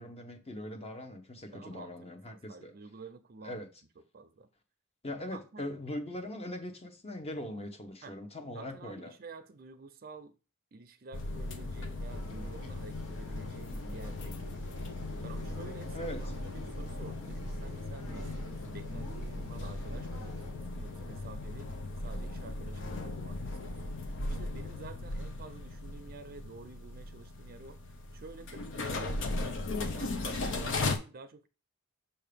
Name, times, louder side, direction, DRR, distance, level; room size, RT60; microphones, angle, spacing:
voice 1, 0.0-2.7 3.4-3.7 5.0-9.1 15.9-16.2, left 1 dB, 30° left, 0.9 m, -41 dB
voice 2, 1.5-1.9 2.3-3.7 4.1-4.5 5.3-5.7 8.0-8.2 8.4-10.4 10.7-14.5 15.2-21.7 22.0-24.0 24.3-27.8 28.1-29.6 29.9-31.5, right 3 dB, 45° right, 0.5 m, -50 dB
sound 1, 11.1-31.0, left 2 dB, 60° left, 0.8 m, -37 dB
sound 2, 12.1-20.5, equal, 85° left, 2.4 m, -49 dB
6.8 x 2.8 x 5.1 m
head